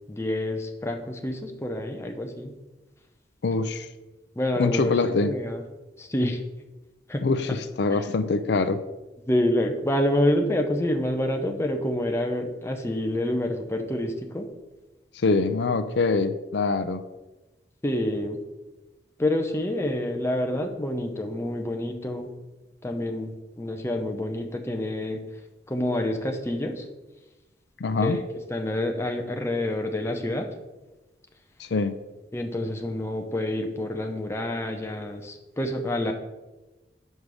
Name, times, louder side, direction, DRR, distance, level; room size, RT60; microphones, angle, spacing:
voice 1, 0.1-2.5 4.4-5.0 5.2-5.6 6.0-6.4 7.1-7.3 7.9-8.0 9.2-14.5 17.8-18.4 19.2-22.3 22.8-25.3 25.7-26.9 27.9-28.2 28.5-30.5 32.3-36.1, left 1 dB, 15° left, 4 dB, 0.6 m, -27 dB
voice 2, 3.4-3.9 4.6-5.3 7.2-8.8 15.1-17.0 27.8-28.2 31.6-32.0, left 3 dB, 70° left, 11 dB, 0.5 m, -24 dB
5.4 x 5.0 x 6.1 m, 1.1 s
head